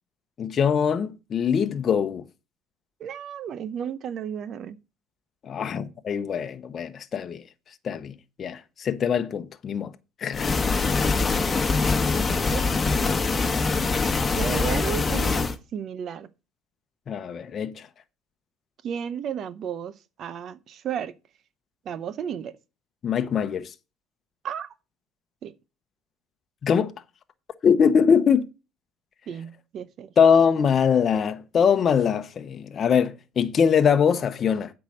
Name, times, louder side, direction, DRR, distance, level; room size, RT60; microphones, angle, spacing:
voice 1, 0.4-2.2 5.4-7.4 7.8-9.9 10.2-10.5 17.1-17.8 23.0-23.7 26.6-26.9 27.6-28.5 30.2-34.7, left 7 dB, 45° left, 0.8 m, -22 dB
voice 2, 3.0-4.8 12.5-12.7 14.4-16.3 18.8-19.9 20.2-21.1 21.9-22.5 24.4-24.7 25.4-25.5 29.3-30.1, right 8 dB, 55° right, 0.7 m, -33 dB
sound 1, 10.3-15.6, left 4 dB, 25° left, 1.3 m, -23 dB
8.2 x 4.7 x 6.4 m
supercardioid pair, 80°, 0 cm